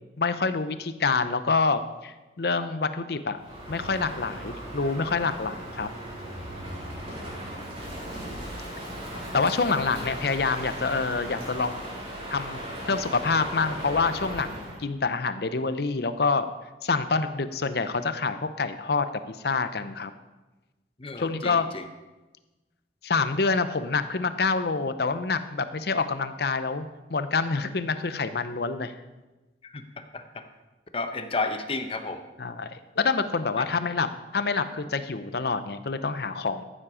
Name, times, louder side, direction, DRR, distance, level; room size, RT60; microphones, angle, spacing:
voice 1, 0.2-3.4 3.7-5.9 9.3-11.8 12.3-12.6 12.9-16.5 16.8-20.1 21.2-21.7 23.0-26.8 27.1-28.9 32.4-34.1 34.3-36.6, left 4 dB, 60° left, 11 dB, 0.7 m, -27 dB
Crow, 3.4-14.8, equal, 30° right, 3.5 m, -37 dB
voice 2, 21.0-21.8 29.6-30.4 30.9-32.2, left 3 dB, 30° left, 7 dB, 0.8 m, -32 dB
14.5 x 7.6 x 5.0 m, 1.1 s
head